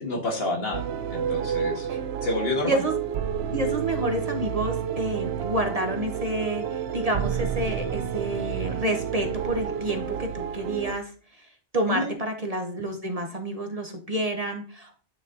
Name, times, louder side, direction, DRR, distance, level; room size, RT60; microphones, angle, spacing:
voice 1, 0.0-0.8 1.1-1.9 2.2-2.8 11.9-12.1, left 2 dB, 60° left, 1 dB, 1.7 m, -28 dB
sound 1, 0.7-10.9, right 8 dB, 70° right, 0.8 m, -30 dB
voice 2, 2.6-3.0 3.5-11.1 11.7-15.0, right 1 dB, 35° right, 4 dB, 0.9 m, -29 dB
9.1 x 4.0 x 3.9 m, 0.41 s
omnidirectional pair, 1.2 m